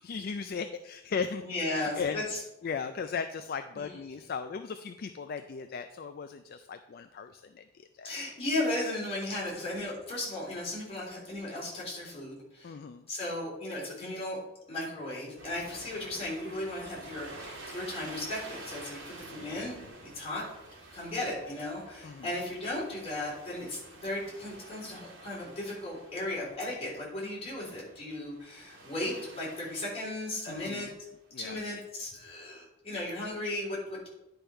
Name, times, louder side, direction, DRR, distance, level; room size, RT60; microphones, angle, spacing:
voice 1, 0.0-2.2 2.6-8.1 12.6-13.0 22.0-22.3 30.5-30.9 31.3-31.6, left 5 dB, 50° left, 9 dB, 0.4 m, -37 dB
voice 2, 1.4-2.4 3.7-3.9 8.0-12.8 13.1-14.4 14.7-19.8 20.1-20.5 20.9-30.9 31.4-34.1, left 1 dB, 30° left, -6 dB, 3.6 m, -36 dB
sound 1, 15.4-30.7 31.4-31.6, right 2 dB, 80° right, 2.4 m, -49 dB
10.0 x 5.3 x 4.4 m, 0.92 s
head